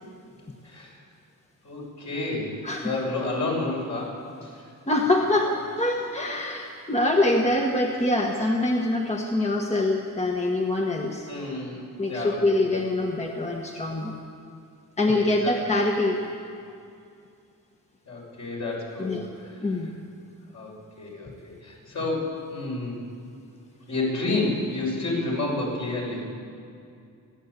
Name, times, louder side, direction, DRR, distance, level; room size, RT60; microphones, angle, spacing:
voice 1, 0.6-0.9 1.6-4.7 11.3-12.6 15.2-15.5 18.1-19.6 20.5-23.0 23.9-26.2, left 2 dB, 55° left, -3 dB, 6.2 m, -30 dB
voice 2, 2.6-2.9 4.9-11.3 12.0-14.1 15.0-16.2 19.0-19.3 19.6-19.9, left 2 dB, 20° left, 1 dB, 1.3 m, -24 dB
29.0 x 11.0 x 8.2 m, 2.5 s
wide cardioid pair, 135°, 34 cm